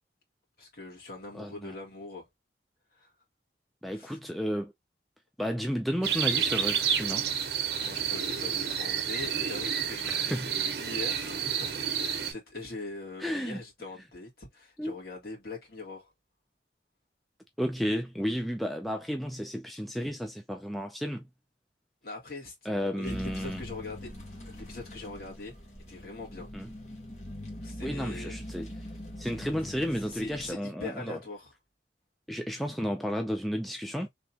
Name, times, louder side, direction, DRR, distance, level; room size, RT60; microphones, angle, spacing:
voice 1, 0.6-2.3 2.9-3.1 3.9-4.2 7.8-10.4 10.8-16.1 22.0-24.2 24.4-25.6 25.9-26.5 27.6-28.4 30.0-31.5, left 3 dB, 55° left, 2.1 m, -42 dB
voice 2, 1.3-1.7 3.8-4.7 5.4-7.3 10.0-10.6 13.2-13.6 14.8-15.0 17.6-21.3 22.6-23.6 26.5-26.7 27.8-28.7 29.2-31.2 32.3-34.1, equal, ahead, 0.4 m, -32 dB
sound 1, 6.0-12.3, right 8 dB, 65° right, 0.9 m, -30 dB
sound 2, 23.0-30.5, equal, 40° left, 1.4 m, -42 dB
3.5 x 2.9 x 2.8 m
head